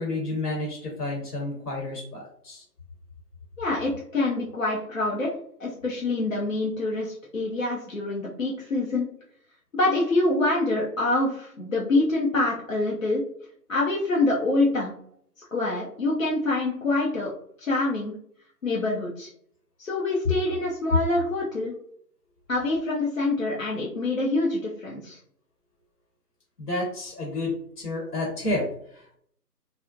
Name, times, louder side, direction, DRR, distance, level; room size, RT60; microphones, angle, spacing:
voice 1, 0.0-2.6 26.6-29.1, left 2 dB, 70° left, -2 dB, 1.0 m, -30 dB
voice 2, 3.6-5.3 5.6-9.1 9.7-13.2 13.7-14.9 15.5-17.3 17.6-18.1 18.6-19.3 19.8-21.7 22.5-25.2, left 2 dB, 55° left, -4 dB, 0.5 m, -25 dB
2.4 x 2.0 x 2.4 m, 0.67 s
figure-of-eight pair, 155°, 49 cm